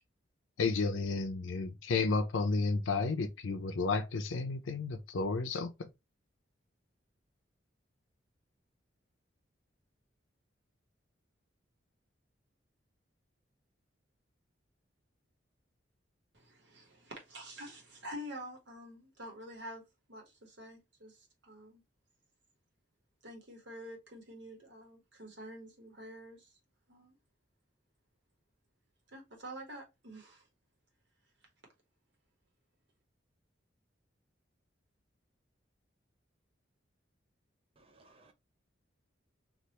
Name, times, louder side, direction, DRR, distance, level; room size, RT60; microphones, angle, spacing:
voice 1, 0.6-5.9, left 3 dB, 85° left, 0.5 m, -32 dB
voice 2, 16.3-19.8 20.1-21.8 23.2-26.5 26.9-27.1 29.1-30.5, equal, 65° right, 1.2 m, -48 dB
voice 3, 37.8-38.3, right 2 dB, 30° right, 0.5 m, -62 dB
3.3 x 2.5 x 2.8 m
head